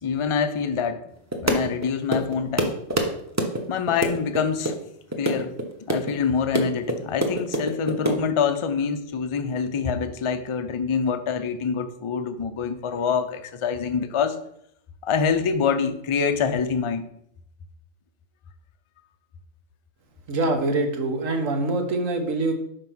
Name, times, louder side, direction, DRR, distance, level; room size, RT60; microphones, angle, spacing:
voice 1, 0.0-1.0 1.4-2.8 3.7-4.7 5.2-5.5 5.8-14.4 15.0-17.0, left 6 dB, 45° left, 9 dB, 0.4 m, -25 dB
sound 1, 1.3-1.8 2.1-3.1 3.4-3.6 3.9-4.4 4.6-4.7 5.1-5.6 5.9-6.1 6.4-8.2, right 1 dB, 15° right, 0.7 m, -24 dB
voice 2, 20.3-22.5, right 2 dB, 80° right, 5 dB, 1.4 m, -24 dB
5.4 x 4.8 x 6.0 m, 0.73 s
omnidirectional pair, 1.3 m